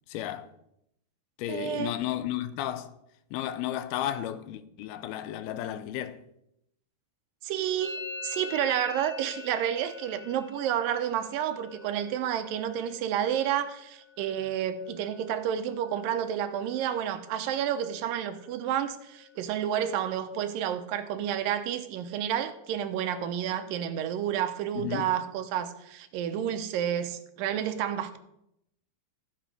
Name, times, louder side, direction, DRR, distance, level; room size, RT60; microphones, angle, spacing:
voice 1, 0.1-0.5 1.4-2.9 3.3-6.2 24.8-25.1, left 12 dB, 85° left, 2.6 m, -33 dB
voice 2, 1.5-1.9 7.4-28.2, right 10 dB, 75° right, 2.2 m, -30 dB
Musical instrument, 7.8-15.4 15.7-16.3 16.5-17.1 17.4-19.4, left 4 dB, 30° left, 3.8 m, -46 dB
14.0 x 8.0 x 4.8 m
omnidirectional pair, 4.4 m